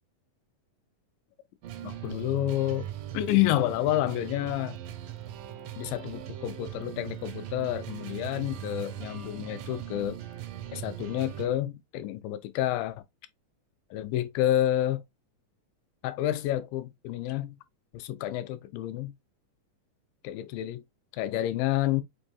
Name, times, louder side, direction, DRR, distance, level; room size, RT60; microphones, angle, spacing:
sound 1, 1.6-11.5, right 11 dB, 80° right, 2.0 m, -40 dB
voice 1, 1.8-2.9 3.1-4.8 5.8-10.2 10.7-13.0 13.9-15.0 16.0-17.6 17.9-19.1 20.2-20.8 21.1-22.0, left 13 dB, 90° left, 2.3 m, -29 dB
5.3 x 2.6 x 2.3 m
omnidirectional pair, 3.9 m